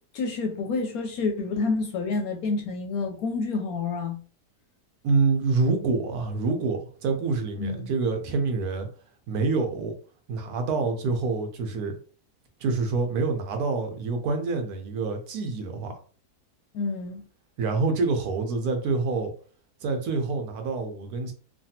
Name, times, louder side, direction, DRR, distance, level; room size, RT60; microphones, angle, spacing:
voice 1, 0.1-4.2 7.6-7.9 16.7-17.2, left 4 dB, 70° left, 1.0 m, -28 dB
voice 2, 5.0-8.9 9.3-10.0 10.3-12.0 12.6-15.9 17.6-19.3 19.8-21.3, right 4 dB, 70° right, 1.1 m, -26 dB
3.2 x 2.2 x 2.7 m
omnidirectional pair, 1.7 m